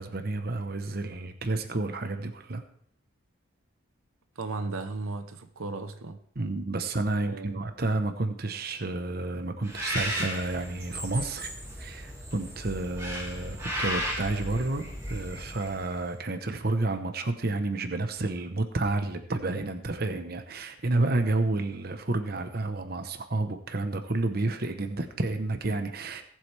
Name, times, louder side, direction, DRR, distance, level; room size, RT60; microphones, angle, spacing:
voice 1, 0.0-2.6 6.4-11.5 11.8-26.2, right 2 dB, 45° right, 7 dB, 1.0 m, -30 dB
voice 2, 4.4-6.2 7.2-7.6, right 3 dB, 85° right, 9 dB, 0.9 m, -35 dB
Bird, 9.6-16.1, equal, 15° right, 2.1 m, -35 dB
19.0 x 7.7 x 3.4 m, 0.63 s
head